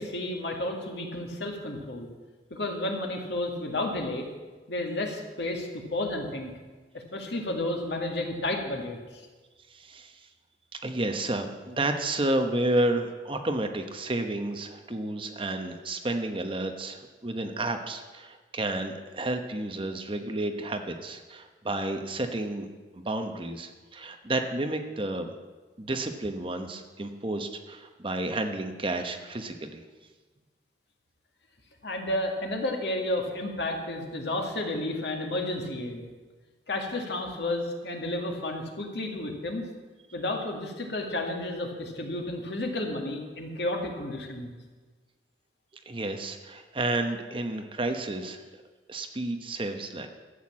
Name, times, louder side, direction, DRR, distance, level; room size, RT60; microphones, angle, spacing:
voice 1, 0.0-2.1 2.5-4.3 4.7-6.5 7.1-9.3 31.8-36.0 36.7-39.7 40.1-44.5, left 1 dB, 75° left, 2 dB, 2.1 m, -32 dB
voice 2, 9.7-10.3 10.7-22.7 22.9-25.3 25.8-29.8 45.9-48.4 48.9-50.1, right 2 dB, 30° right, 5 dB, 1.0 m, -31 dB
13.0 x 8.1 x 7.4 m, 1.3 s
head